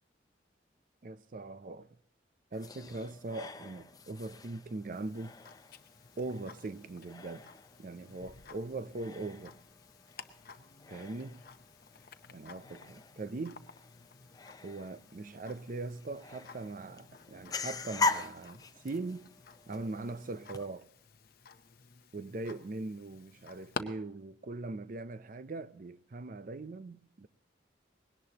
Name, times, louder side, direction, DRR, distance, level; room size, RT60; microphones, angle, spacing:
voice 1, 1.0-1.9 2.5-5.4 6.2-7.5 7.8-9.6 10.9-11.3 12.3-13.6 14.6-19.3 19.7-20.9 22.1-27.3, right 2 dB, 45° right, 0.5 m, -41 dB
sound 1, 2.5-20.7, left 3 dB, 20° left, 0.5 m, -42 dB
Tick-tock, 4.9-23.8, left 5 dB, 50° left, 0.7 m, -52 dB
20.0 x 17.5 x 2.9 m
head